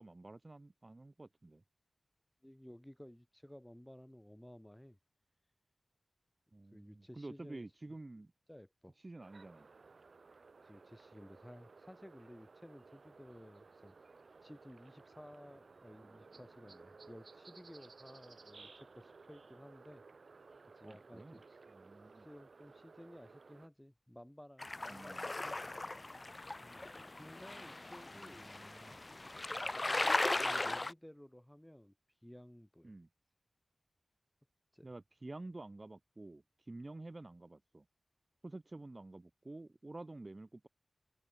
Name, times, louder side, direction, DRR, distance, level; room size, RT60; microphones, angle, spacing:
voice 1, 0.0-1.6 6.5-8.3 9.0-9.7 20.8-21.4 21.7-22.3 24.9-25.3 28.1-29.0 32.8-33.1 34.8-37.9 38.4-40.7, right 2 dB, 30° right, 2.5 m, -50 dB
voice 2, 2.4-5.0 6.7-7.7 8.5-9.0 10.6-14.0 14.4-20.0 20.7-21.6 22.1-25.8 26.6-28.5 29.6-32.0 32.2-32.9 34.7-34.9, equal, 5° left, 7.9 m, -56 dB
sound 1, 9.2-23.7, right 4 dB, 65° right, 7.0 m, -58 dB
sound 2, 24.6-30.9, left 2 dB, 30° left, 1.0 m, -38 dB
wide cardioid pair, 100°, 0 cm